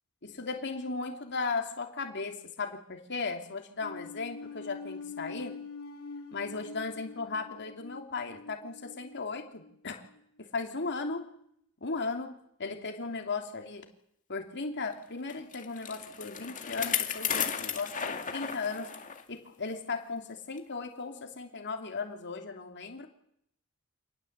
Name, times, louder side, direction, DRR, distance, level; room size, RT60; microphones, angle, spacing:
voice 1, 0.2-5.6 6.3-10.0 10.4-11.3 11.8-12.3 12.6-13.9 14.3-18.9 19.3-23.1, left 4 dB, 55° left, 4 dB, 2.9 m, -36 dB
sound 1, 3.8-10.2, left 4 dB, 75° left, 2.3 m, -45 dB
Bicycle, 15.3-19.2 19.7-19.8 20.6-20.7, left 8 dB, 35° left, 2.1 m, -34 dB
26.5 x 19.5 x 8.1 m, 0.72 s
head